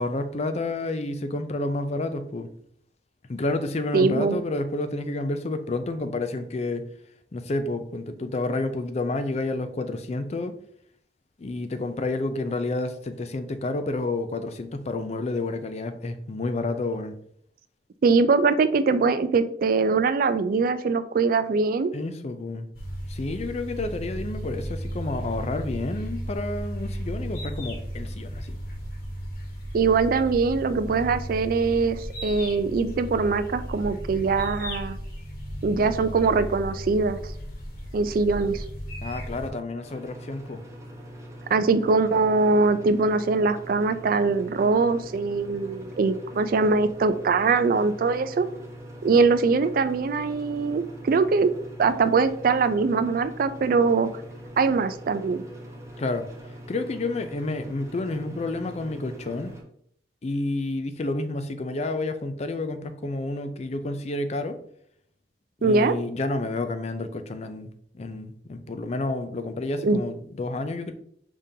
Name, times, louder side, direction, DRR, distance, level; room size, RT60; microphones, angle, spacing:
voice 1, 0.0-2.5 3.3-6.9 7.3-10.5 11.4-17.1 21.9-22.7 23.1-28.6 39.0-40.6 56.0-56.3 56.7-59.5 60.2-64.6 65.6-70.9, left 2 dB, 40° left, 0.4 m, -30 dB
voice 2, 3.9-4.4 18.0-21.9 29.7-35.0 35.6-37.2 37.9-38.6 41.5-48.5 49.0-51.5 51.8-54.1 54.6-55.4 65.6-65.9 69.8-70.0, right 4 dB, 55° right, 0.3 m, -22 dB
sound 1, 22.7-39.5, equal, 55° left, 1.3 m, -35 dB
sound 2, 39.8-59.6, equal, 15° right, 0.7 m, -42 dB
5.2 x 3.6 x 2.7 m
head